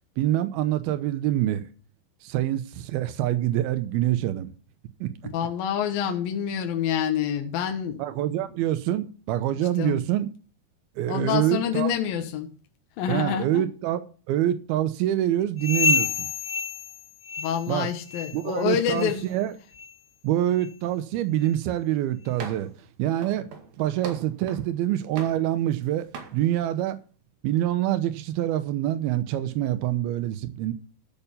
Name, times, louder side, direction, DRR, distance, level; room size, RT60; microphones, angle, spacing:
voice 1, 0.2-1.7 2.2-4.5 5.0-5.1 8.0-10.3 11.0-11.9 13.1-16.3 17.7-17.9 18.3-19.5 20.2-22.7 23.0-23.5 23.8-26.0 26.3-27.0 27.4-30.7, right 13 dB, 90° right, 2.7 m, -25 dB
voice 2, 5.2-8.0 9.8-10.0 11.1-12.5 13.0-13.6 17.4-19.3, left 9 dB, 70° left, 3.0 m, -27 dB
sound 1, 15.6-17.8 18.1-18.5 18.9-19.1 19.7-19.9 20.6-20.7 21.4-21.5, left 5 dB, 50° left, 0.9 m, -28 dB
sound 2, 22.4-22.8 23.2-24.7 25.2-25.8 26.1-26.4, right 5 dB, 70° right, 3.8 m, -40 dB
14.0 x 5.8 x 7.0 m
omnidirectional pair, 4.4 m